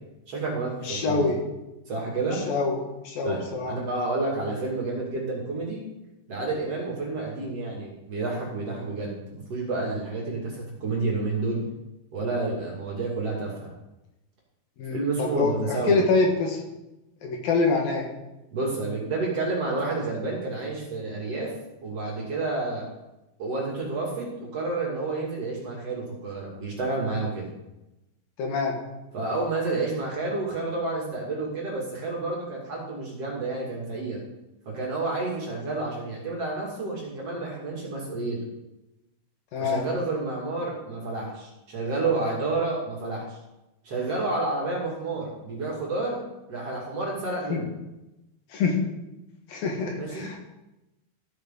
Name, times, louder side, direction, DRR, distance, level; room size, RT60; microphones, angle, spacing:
voice 1, 0.3-1.3 1.9-2.4 3.2-5.8 6.3-11.6 12.1-13.7 14.9-16.0 18.5-21.5 21.8-22.8 23.4-27.4 29.1-34.2 34.7-38.4 39.6-43.4 43.8-47.7 50.0-50.3, right 3 dB, 45° right, -3 dB, 3.1 m, -30 dB
voice 2, 0.9-1.4 2.5-2.8 3.0-3.7 14.8-16.6 17.2-18.1 28.4-28.7 39.5-39.9 47.5-47.6 48.5-48.8 49.5-50.4, left 3 dB, 70° left, 1 dB, 3.2 m, -25 dB
14.0 x 8.6 x 3.9 m, 0.96 s
omnidirectional pair, 4.5 m